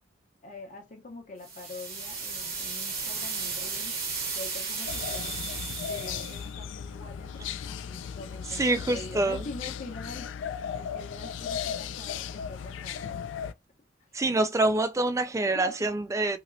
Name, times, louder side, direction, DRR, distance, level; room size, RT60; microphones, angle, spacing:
voice 1, 0.4-4.0 4.3-10.3 10.7-13.3 15.5-15.7, left 2 dB, 40° left, 0.9 m, -44 dB
sound 1, 1.4-6.5, right 4 dB, 55° right, 1.1 m, -34 dB
sound 2, 4.9-13.5, left 7 dB, 75° left, 0.3 m, -36 dB
voice 2, 8.5-9.4 14.1-16.4, right 2 dB, 15° right, 0.3 m, -26 dB
2.9 x 2.9 x 2.6 m
head